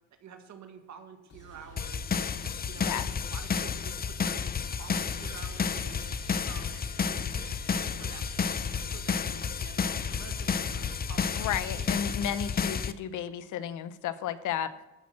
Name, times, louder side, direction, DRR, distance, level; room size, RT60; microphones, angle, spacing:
voice 1, 0.2-2.3 2.7-4.5 4.8-6.1 6.4-6.8 7.1-11.5 11.7-12.3, right 7 dB, 65° right, 6 dB, 1.8 m, -49 dB
sound 1, 1.3-12.0, right 3 dB, 55° left, 4.9 m, -51 dB
sound 2, 1.4-12.0, right 3 dB, 40° right, 5.4 m, -55 dB
sound 3, 1.8-12.9, left 6 dB, 30° left, 0.6 m, -31 dB
voice 2, 11.4-14.7, left 9 dB, 80° left, 14 dB, 0.8 m, -33 dB
13.5 x 6.1 x 7.4 m, 1.0 s
cardioid pair, 90°, 30 cm